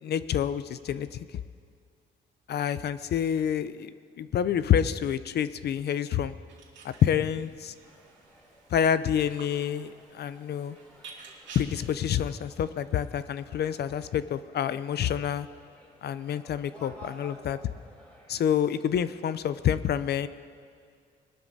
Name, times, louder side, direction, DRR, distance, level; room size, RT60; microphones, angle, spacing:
voice 1, 0.0-1.2 2.5-6.3 6.8-7.7 8.7-10.8 11.5-15.5 16.0-17.6 18.3-20.3, left 9 dB, 55° left, 14 dB, 0.5 m, -28 dB
sound 1, 6.5-11.6, right 5 dB, 70° right, 2.4 m, -51 dB
sound 2, 7.8-19.6, right 1 dB, 5° left, 3.4 m, -55 dB
19.5 x 12.0 x 2.7 m, 2.2 s
cardioid pair, 90°, 20 cm